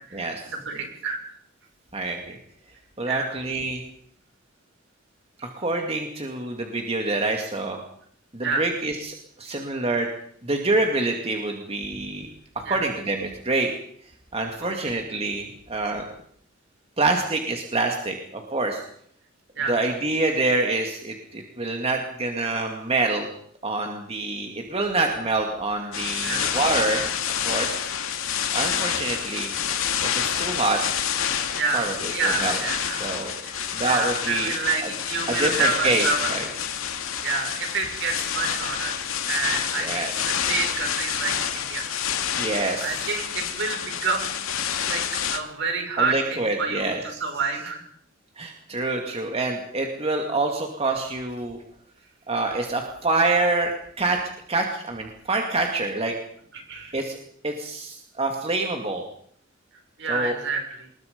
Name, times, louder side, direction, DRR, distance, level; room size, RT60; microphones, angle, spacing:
voice 1, 0.1-0.4 1.9-2.4 3.0-3.8 5.6-7.8 8.3-10.1 10.4-12.3 12.6-13.7 14.3-16.0 17.0-18.8 19.7-23.3 23.6-27.0 27.4-27.8 28.5-29.5 30.0-30.8 31.7-32.6 33.0-33.4 33.7-34.5 34.8-34.9 35.4-36.4 39.8-40.1 42.3-43.0 46.0-47.0 48.4-51.6 52.3-53.7 54.0-54.2 54.5-56.1 56.9-57.1 57.4-59.0 60.1-60.3, right 2 dB, 30° right, 3 dB, 2.3 m, -26 dB
voice 2, 0.6-1.2 3.1-3.4 8.4-8.7 12.7-12.9 14.6-15.0 19.6-19.8 26.2-26.6 31.5-36.3 37.2-38.9 39.3-41.9 42.8-44.3 44.8-45.0 45.3-47.8 56.5-57.0 60.0-60.9, right 4 dB, 60° right, 3 dB, 6.3 m, -28 dB
sound 1, 25.9-45.4, left 8 dB, 90° left, 2.3 m, -28 dB
26.0 x 21.5 x 5.3 m, 0.65 s
head